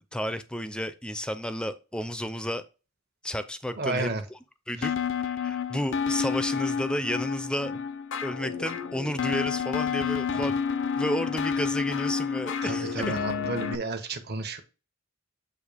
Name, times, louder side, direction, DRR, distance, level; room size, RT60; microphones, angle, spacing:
voice 1, 0.1-2.6 3.2-4.4 4.7-7.7 8.2-10.6 11.0-13.2, equal, 5° left, 11 dB, 0.5 m, -32 dB
voice 2, 3.8-4.2 10.3-10.4 12.6-14.6, right 3 dB, 55° right, 6 dB, 1.2 m, -32 dB
sound 1, 4.8-13.7, left 6 dB, 65° left, 0.6 m, -30 dB
8.2 x 2.8 x 5.0 m, 0.31 s
head